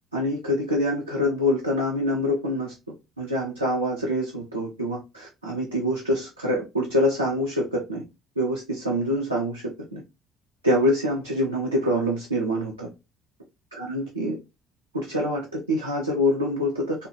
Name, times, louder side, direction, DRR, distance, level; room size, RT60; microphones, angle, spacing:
voice 1, 0.1-2.7 3.2-8.0 8.4-9.6 9.9-10.0 10.6-12.9 13.7-14.4 14.9-17.1, left 1 dB, 90° right, 0.5 m, -25 dB
3.3 x 2.3 x 2.8 m
figure-of-eight pair, 50°, 0 cm